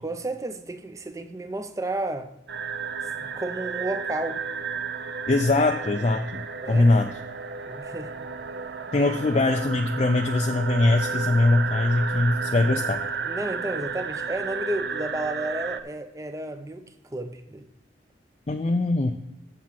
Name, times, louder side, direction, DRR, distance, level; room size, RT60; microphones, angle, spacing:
voice 1, 0.0-2.3 3.2-4.4 6.6-6.9 7.7-8.1 9.0-9.2 13.2-16.8 17.1-17.7, right 2 dB, 15° right, 8 dB, 0.6 m, -32 dB
sound 1, 2.5-15.8, right 5 dB, 60° right, 0.6 m, -32 dB
voice 2, 5.3-7.1 8.9-13.0 18.5-19.1, left 2 dB, 35° left, 5 dB, 0.4 m, -22 dB
7.4 x 7.1 x 5.8 m, 0.87 s
head